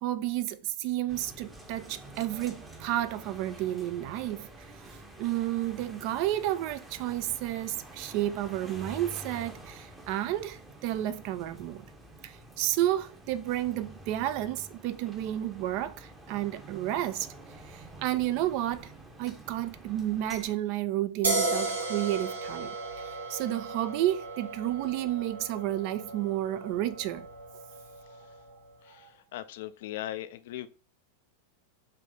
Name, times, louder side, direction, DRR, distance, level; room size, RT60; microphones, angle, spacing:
voice 1, 0.0-4.5 4.7-11.9 12.2-17.3 17.6-18.9 19.2-22.8 23.3-27.3 29.0-29.1, right 13 dB, 45° right, 0.3 m, -31 dB
sound 1, 1.1-20.5, right 1 dB, 10° right, 0.7 m, -48 dB
sound 2, 21.2-28.5, right 2 dB, 75° right, 0.9 m, -35 dB
voice 2, 28.8-30.7, left 14 dB, 55° left, 0.3 m, -39 dB
3.3 x 2.9 x 3.7 m
figure-of-eight pair, 90°, 0 cm